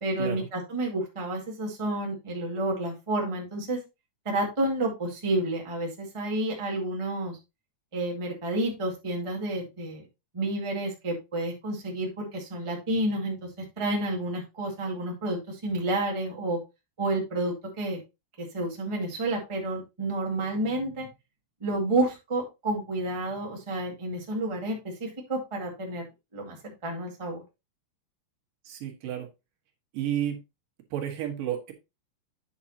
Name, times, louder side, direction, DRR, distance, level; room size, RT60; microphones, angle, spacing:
voice 1, 0.0-3.8 4.2-7.4 7.9-10.0 10.3-13.5 13.8-16.6 17.0-18.0 18.4-21.1 21.6-26.0 26.3-27.4, right 1 dB, 15° right, 0 dB, 1.1 m, -30 dB
voice 2, 28.7-29.3 29.9-30.4 30.9-31.7, right 10 dB, 80° right, 4 dB, 3.0 m, -31 dB
8.8 x 6.2 x 2.8 m, 0.24 s
omnidirectional pair, 3.8 m